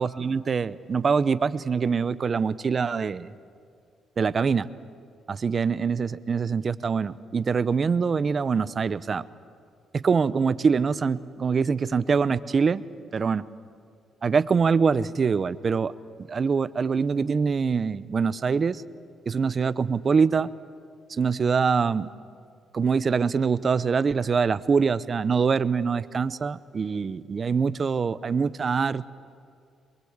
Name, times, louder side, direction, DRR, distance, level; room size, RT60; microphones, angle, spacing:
voice 1, 0.0-3.3 4.2-4.7 5.3-9.2 9.9-12.8 13.1-13.4 14.2-15.9 16.3-18.8 19.3-20.5 21.1-22.1 22.7-29.1, right 5 dB, 40° right, 16 dB, 0.7 m, -24 dB
23.0 x 22.0 x 8.1 m, 2.3 s
cardioid pair, 90°, 0 cm